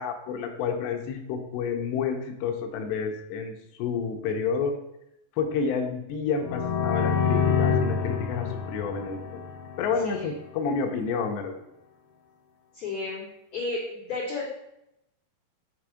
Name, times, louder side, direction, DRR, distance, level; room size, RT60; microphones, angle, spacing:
voice 1, 0.0-3.5 3.8-4.7 5.4-9.2 9.8-11.6, left 6 dB, 85° left, 4 dB, 2.7 m, -29 dB
sound 1, 6.4-10.1, left 6 dB, 70° left, 3.1 m, -27 dB
voice 2, 12.7-13.3 13.5-14.4, left 3 dB, 40° left, -9 dB, 3.1 m, -32 dB
8.4 x 3.5 x 4.8 m, 0.84 s
omnidirectional pair, 5.0 m